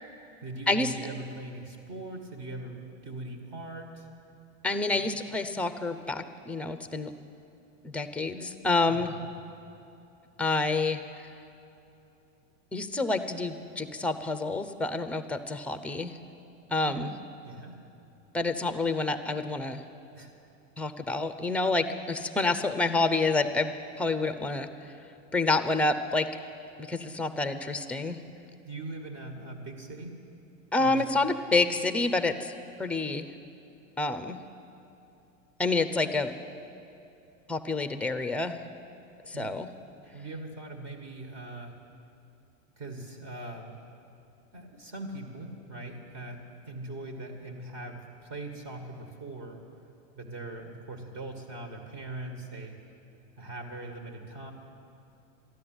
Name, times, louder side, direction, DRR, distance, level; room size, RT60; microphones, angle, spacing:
voice 1, 0.4-4.1 4.9-5.1 8.9-9.2 16.8-17.1 17.4-17.8 20.2-20.3 28.6-30.1 30.8-31.0 39.3-39.5 40.0-41.8 42.8-43.7 44.5-49.6 50.1-52.7 53.4-54.5, right 2 dB, 45° right, 4 dB, 2.2 m, -41 dB
voice 2, 4.6-7.1 7.8-9.1 10.4-11.0 12.7-16.2 16.7-17.1 18.3-19.8 20.8-23.7 24.0-24.7 25.3-26.3 26.9-28.2 30.7-32.5 32.8-33.3 34.0-34.4 35.6-36.3 37.5-38.6 39.3-39.7, left 3 dB, 5° left, 10 dB, 0.6 m, -28 dB
13.0 x 11.0 x 8.0 m, 2.9 s
hypercardioid pair, 110°, 39 cm